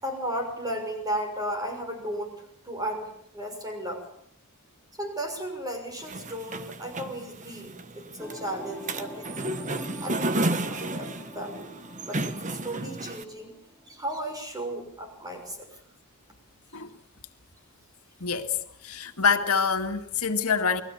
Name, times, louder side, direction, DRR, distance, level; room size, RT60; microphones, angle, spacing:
voice 1, 0.0-4.1 4.9-9.6 10.0-11.7 12.0-13.6 13.8-15.8, right 1 dB, 15° right, 6.4 m, -35 dB
sound 1, 6.0-13.2, right 2 dB, 35° right, 1.3 m, -32 dB
sound 2, 8.2-14.0, left 1 dB, 5° left, 3.6 m, -45 dB
voice 2, 18.2-18.6 18.8-20.8, left 5 dB, 90° left, 2.2 m, -25 dB
29.0 x 21.5 x 7.2 m
head